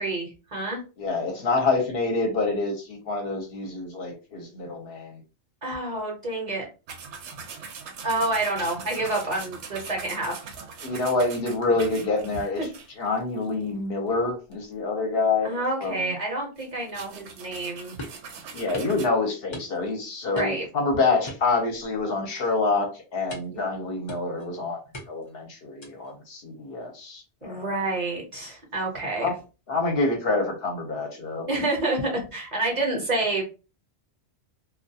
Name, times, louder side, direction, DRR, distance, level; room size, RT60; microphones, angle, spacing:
voice 1, 0.0-0.8 5.6-6.6 8.0-10.5 15.4-17.9 20.3-20.7 27.4-29.3 31.5-33.5, right 2 dB, 45° right, 0 dB, 0.8 m, -28 dB
voice 2, 1.0-5.2 10.8-12.6 13.0-16.1 18.5-24.8 25.1-27.7 29.2-29.3 29.7-31.5, left 3 dB, 65° left, 2 dB, 0.8 m, -27 dB
sound 1, 6.9-13.6 14.1-14.2 14.5-14.6 16.6-19.1, right 5 dB, 85° right, 0.9 m, -41 dB
sound 2, 18.0-18.3 18.7-19.0 19.5-20.0 20.3-20.7 21.3-22.0 22.3-22.6 23.3-23.6 24.1-24.5 24.9-25.3 25.8-26.1, left 1 dB, 35° left, 0.5 m, -41 dB
2.2 x 2.2 x 2.6 m, 0.32 s
omnidirectional pair, 1.1 m